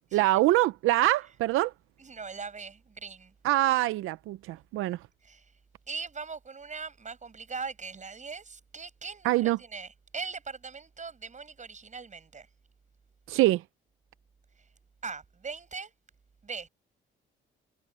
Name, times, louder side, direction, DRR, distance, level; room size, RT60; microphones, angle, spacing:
voice 1, 0.1-1.7 3.4-5.0 9.2-9.6 13.3-13.6, right 17 dB, 85° right, 0.6 m, -24 dB
voice 2, 2.0-3.3 5.2-5.5 5.9-12.5 15.0-15.9 16.4-16.7, right 5 dB, 35° right, 7.9 m, -40 dB
cardioid pair, 80°, 21 cm